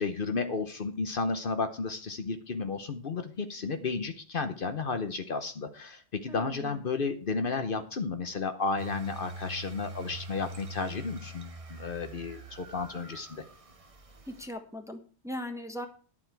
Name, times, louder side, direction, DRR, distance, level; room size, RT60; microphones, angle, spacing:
voice 1, 0.0-13.4, left 4 dB, 55° left, 8 dB, 1.0 m, -33 dB
voice 2, 6.3-6.8 14.3-15.9, left 1 dB, 5° right, 6 dB, 1.2 m, -39 dB
sound 1, 8.8-14.5, right 1 dB, 35° right, 1.0 m, -44 dB
11.5 x 7.4 x 4.6 m, 0.42 s
omnidirectional pair, 1.1 m